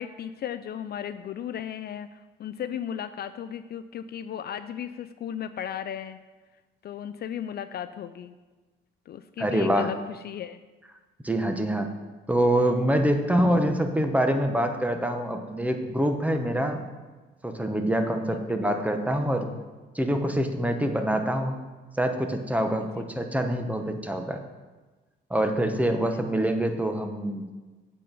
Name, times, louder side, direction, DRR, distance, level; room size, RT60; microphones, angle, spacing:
voice 1, 0.0-6.2 6.8-8.3 9.1-10.6 18.3-18.7 22.8-23.1 25.9-26.2, left 9 dB, 55° left, 12 dB, 0.4 m, -36 dB
voice 2, 9.4-9.9 11.2-11.9 12.3-16.9 17.4-19.5 19.9-21.5 22.0-24.4 25.3-27.4, right 1 dB, 5° right, 5 dB, 0.9 m, -25 dB
8.3 x 4.2 x 6.7 m, 1.2 s
cardioid pair, 90°, 20 cm